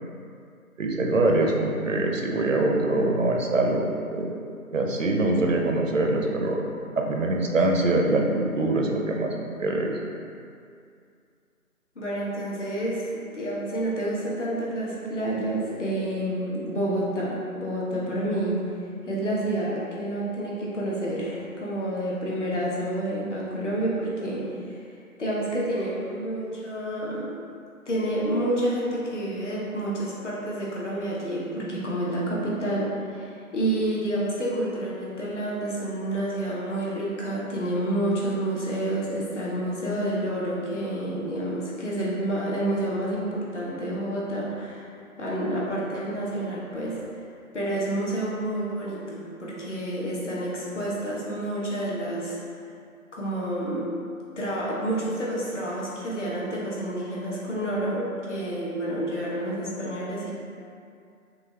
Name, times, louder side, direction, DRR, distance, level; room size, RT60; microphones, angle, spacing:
voice 1, 0.8-3.8 4.1-4.3 4.7-6.6 7.0-9.9, right 2 dB, 60° right, 0 dB, 0.6 m, -24 dB
voice 2, 11.9-18.6 19.1-24.8 25.2-27.3 27.9-44.8 45.2-47.1 47.5-52.4 53.1-54.0 54.4-60.3, right 1 dB, 55° left, -6 dB, 1.2 m, -29 dB
6.1 x 2.5 x 3.2 m, 2.4 s
figure-of-eight pair, 165°, 44 cm